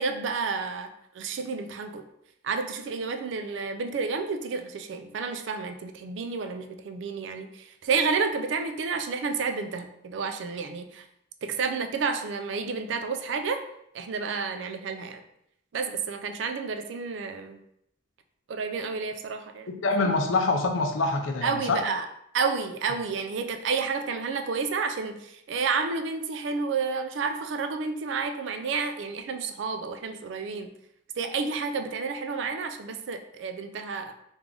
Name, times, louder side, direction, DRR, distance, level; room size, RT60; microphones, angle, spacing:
voice 1, 0.0-2.0 2.4-11.1 11.4-13.6 13.9-15.2 15.7-17.6 18.5-19.9 21.4-22.1 22.3-30.7 31.2-34.1, right 5 dB, 70° right, 7 dB, 0.4 m, -30 dB
voice 2, 19.7-21.8, left 3 dB, 85° left, 4 dB, 0.5 m, -25 dB
3.3 x 2.4 x 3.7 m, 0.75 s
head